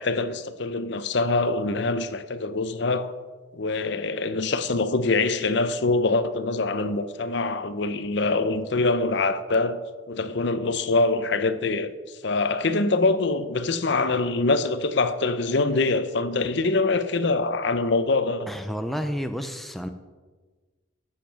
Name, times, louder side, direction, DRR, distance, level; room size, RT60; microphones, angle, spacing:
voice 1, 0.0-3.1 3.5-11.9 12.2-18.5, left 3 dB, 60° left, 0.6 m, -24 dB
voice 2, 18.5-19.9, equal, ahead, 0.5 m, -30 dB
9.0 x 7.4 x 6.2 m
head